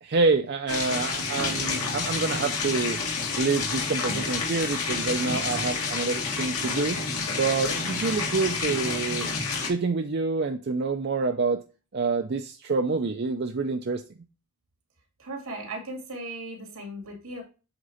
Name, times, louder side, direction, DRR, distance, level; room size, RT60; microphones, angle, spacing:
voice 1, 0.0-3.0 3.4-7.0 7.3-9.3 9.7-11.6 11.9-14.0, right 4 dB, 45° right, 5 dB, 0.5 m, -27 dB
sound 1, 0.7-9.7, left 4 dB, 85° left, 1.8 m, -29 dB
voice 2, 15.2-17.4, right 1 dB, 75° right, 1 dB, 2.5 m, -37 dB
8.0 x 3.7 x 4.2 m, 0.33 s
head